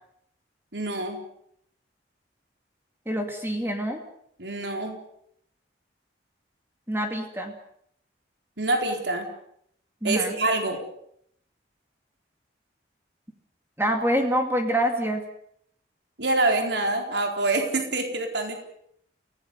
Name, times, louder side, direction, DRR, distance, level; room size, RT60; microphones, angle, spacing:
voice 1, 0.7-1.2 4.4-5.0 8.6-9.3 10.0-10.8 16.2-18.6, right 2 dB, 70° right, 3 dB, 4.3 m, -26 dB
voice 2, 3.1-4.0 6.9-7.5 10.0-10.4 13.8-15.2, equal, 10° right, 3 dB, 2.4 m, -26 dB
29.5 x 18.0 x 6.8 m, 0.71 s
head